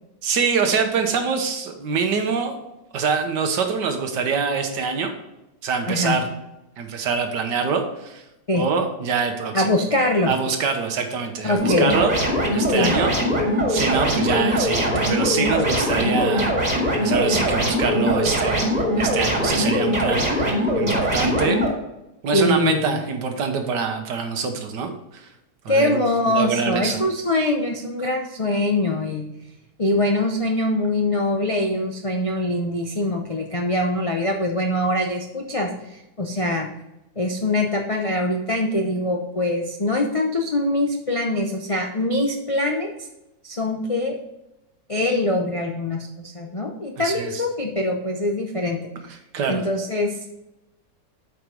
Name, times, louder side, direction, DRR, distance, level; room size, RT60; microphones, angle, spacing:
voice 1, 0.2-2.5 2.9-5.1 5.6-6.3 6.8-8.2 8.5-9.7 10.3-13.1 13.7-16.5 17.0-18.7 19.0-21.6 22.2-25.3 25.6-27.0 47.0-47.4 49.3-49.6, right 5 dB, 85° right, 5 dB, 1.7 m, -24 dB
voice 2, 9.5-10.3 11.4-11.9 12.7-12.9 22.3-23.0 25.7-29.3 29.8-36.7 37.2-42.9 43.4-44.1 44.9-48.8 49.5-50.2, left 1 dB, 65° left, 2 dB, 0.3 m, -23 dB
sound 1, 11.5-21.7, equal, 25° right, 2.0 m, -21 dB
7.9 x 5.1 x 5.0 m, 0.93 s
omnidirectional pair, 1.8 m